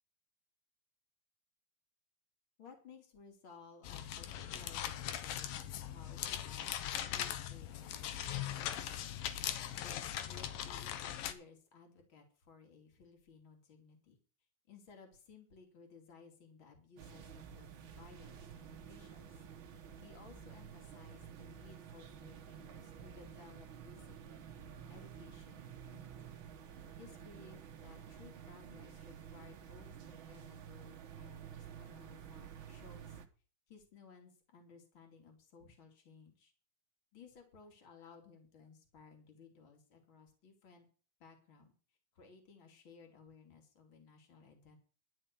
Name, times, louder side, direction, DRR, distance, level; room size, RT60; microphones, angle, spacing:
voice 1, 2.6-8.9 9.8-14.2 14.7-24.5 24.9-26.4 27.0-33.2 33.7-36.5 37.1-40.9 41.2-41.7 42.1-44.8, left 5 dB, 40° left, 2 dB, 3.4 m, -59 dB
sound 1, 3.8-11.3, left 11 dB, 85° left, 2.7 m, -40 dB
sound 2, 17.0-33.3, right 8 dB, 60° right, 1.4 m, -51 dB
11.5 x 6.4 x 8.4 m, 0.38 s
omnidirectional pair, 3.9 m